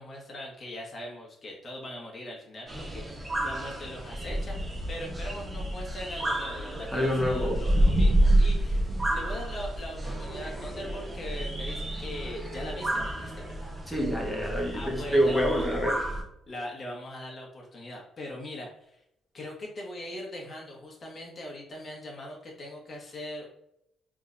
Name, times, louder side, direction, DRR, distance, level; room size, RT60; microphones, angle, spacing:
voice 1, 0.0-13.7 14.7-15.6 16.5-19.0 19.3-23.5, left 1 dB, 45° left, -2 dB, 1.5 m, -41 dB
sound 1, 2.7-16.2, right 1 dB, 20° right, 1.1 m, -29 dB
voice 2, 6.9-7.6 13.9-16.1, equal, 5° right, -3 dB, 1.3 m, -27 dB
3.8 x 3.6 x 2.6 m, 0.80 s
cardioid pair, 75°, 0 cm